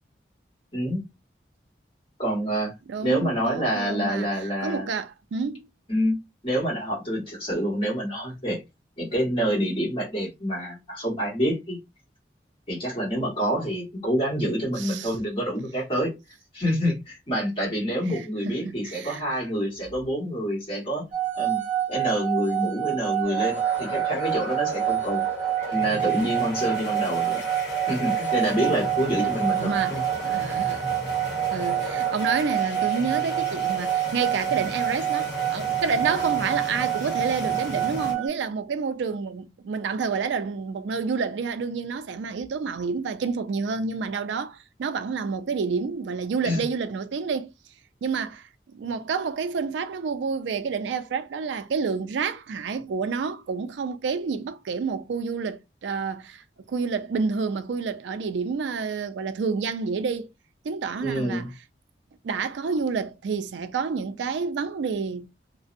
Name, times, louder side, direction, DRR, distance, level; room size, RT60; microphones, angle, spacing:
voice 1, 2.2-2.7 3.0-4.9 5.9-6.2 6.4-8.6 9.0-11.8 12.7-16.1 16.5-21.0 21.4-21.6 21.9-25.2 25.7-27.4 27.9-30.0 46.4-46.6 61.0-61.5, equal, 30° left, 1.3 m, -27 dB
voice 2, 2.9-5.6 14.8-15.2 18.1-19.4 29.6-30.9 31.5-47.5 48.0-48.5 48.7-60.3 60.6-61.5 62.2-65.3, right 5 dB, 85° right, 0.4 m, -29 dB
sound 1, 21.1-38.3, right 12 dB, 35° right, 0.8 m, -27 dB
sound 2, 23.2-38.1, left 1 dB, 70° left, 0.9 m, -35 dB
2.5 x 2.0 x 2.5 m
head